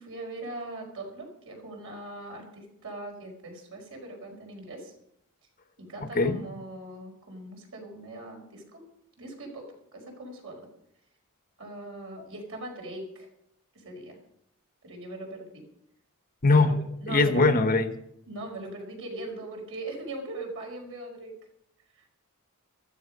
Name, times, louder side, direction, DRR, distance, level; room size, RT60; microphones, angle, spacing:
voice 1, 0.0-4.9 5.8-8.8 9.2-9.7 9.9-10.7 11.6-13.3 13.7-14.2 14.8-15.6 16.6-17.5 18.3-21.3 21.9-22.1, right 2 dB, 65° right, 1 dB, 5.0 m, -40 dB
voice 2, 16.4-16.7 17.1-17.9, left 3 dB, 40° left, 8 dB, 1.1 m, -20 dB
15.0 x 13.5 x 5.3 m, 0.75 s
head